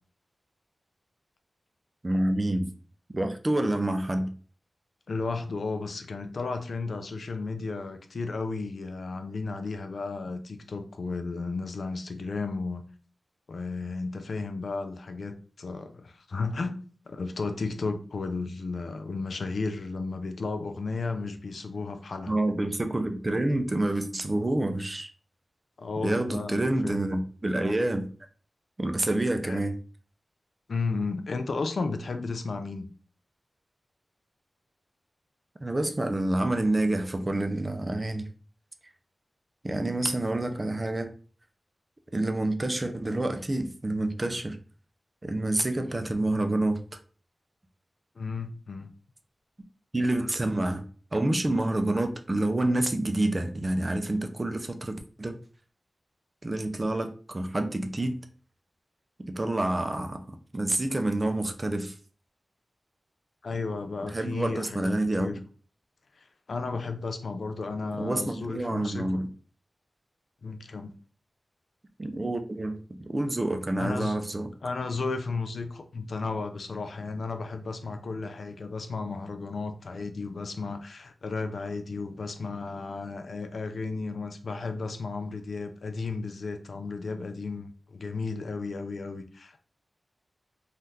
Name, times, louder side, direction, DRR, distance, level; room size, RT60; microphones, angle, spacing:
voice 1, 2.0-2.7 3.1-4.3 22.3-25.1 26.0-28.1 28.8-29.7 35.6-38.3 39.6-41.1 42.1-44.6 45.2-46.8 49.9-50.9 51.1-55.4 56.4-58.2 59.2-61.9 64.1-65.3 68.0-69.3 72.0-74.5, right 1 dB, 25° right, 0.4 m, -28 dB
voice 2, 5.1-12.8 13.5-22.4 25.8-27.0 29.4-29.6 30.7-32.9 48.2-48.9 63.4-65.4 66.2-69.2 70.4-70.9 73.8-74.2 74.6-89.6, left 3 dB, 70° left, 0.4 m, -34 dB
3.5 x 2.4 x 2.7 m
wide cardioid pair, 125°, 0 cm